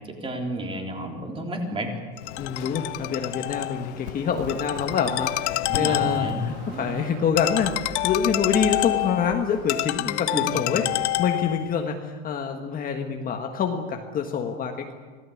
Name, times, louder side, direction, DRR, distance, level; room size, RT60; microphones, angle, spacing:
voice 1, 0.1-1.9 5.7-6.4 6.7-6.9 10.3-10.8, right 1 dB, 15° right, 2 dB, 3.6 m, -31 dB
Ringtone, 2.2-11.7, left 18 dB, 75° left, 1.0 m, -28 dB
voice 2, 2.4-10.8 11.2-14.9, left 6 dB, 25° left, 3 dB, 1.6 m, -26 dB
sound 1, 6.0-10.8, right 8 dB, 65° right, 2.6 m, -45 dB
26.0 x 18.0 x 8.6 m, 1.5 s
supercardioid pair, 155°, 34 cm